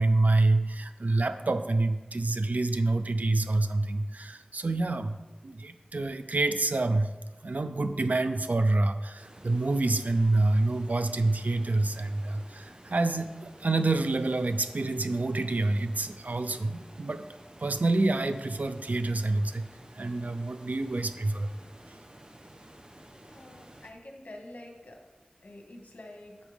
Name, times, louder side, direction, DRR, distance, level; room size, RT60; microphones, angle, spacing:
voice 1, 0.0-5.2 5.4-7.1 7.4-17.3 17.6-19.7 19.9-21.5, right 2 dB, 75° right, 9 dB, 0.6 m, -27 dB
sound 1, 9.2-23.9, right 1 dB, 35° right, 1.1 m, -52 dB
voice 2, 23.2-25.0 25.4-26.4, left 1 dB, 70° left, 1 dB, 1.8 m, -47 dB
11.0 x 7.9 x 3.6 m, 1.1 s
wide cardioid pair, 50°, 3 cm